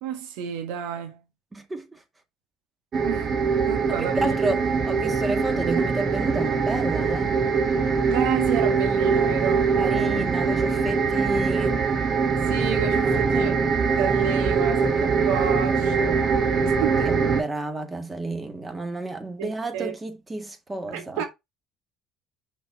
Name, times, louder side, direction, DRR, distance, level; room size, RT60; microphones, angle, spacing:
voice 1, 0.0-1.2 3.0-3.4 3.7-4.3 8.1-10.3 12.5-13.6 14.0-16.3 16.6-17.2 19.4-19.9 20.9-21.3, right 9 dB, 90° right, 1.3 m, -31 dB
voice 2, 1.5-2.0 4.0-7.4 9.8-11.8 13.1-13.5 17.0-21.2, right 2 dB, 15° right, 1.8 m, -31 dB
sound 1, 2.9-17.4, right 5 dB, 40° right, 1.4 m, -23 dB
5.8 x 3.9 x 4.5 m
cardioid pair, 115°, 0 cm